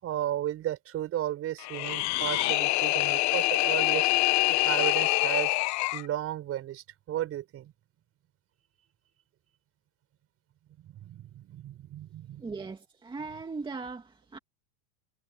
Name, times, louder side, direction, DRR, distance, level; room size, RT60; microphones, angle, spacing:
voice 1, 0.0-4.1 4.4-5.6 5.9-7.7 10.8-12.6, right 12 dB, 35° right, 5.8 m, -34 dB
sound 1, 1.6-6.1, left 19 dB, 45° left, 1.3 m, -25 dB
voice 2, 12.4-14.4, right 4 dB, 10° right, 2.3 m, -39 dB
supercardioid pair, 140°, 40 cm